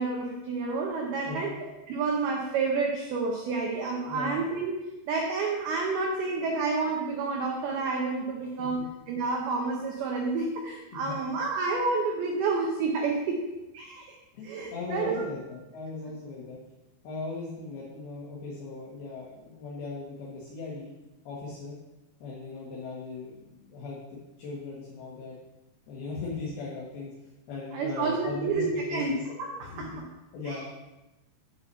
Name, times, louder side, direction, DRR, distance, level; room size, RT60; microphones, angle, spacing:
voice 1, 0.0-1.5 1.9-4.7 5.1-13.4 13.7-14.1 14.4-15.2 27.7-29.1 29.4-30.1 30.5-30.6, right 4 dB, 90° right, 1 dB, 2.2 m, -29 dB
voice 2, 1.3-1.6 4.1-4.4 8.4-8.8 11.0-11.2 14.3-16.6 17.0-20.9 21.2-21.8 22.2-24.0 24.4-25.4 25.9-27.1 27.5-29.3 29.6-29.8 30.3-30.6, left 3 dB, 65° left, -6 dB, 3.0 m, -38 dB
8.3 x 6.2 x 5.4 m, 1.0 s
omnidirectional pair, 5.7 m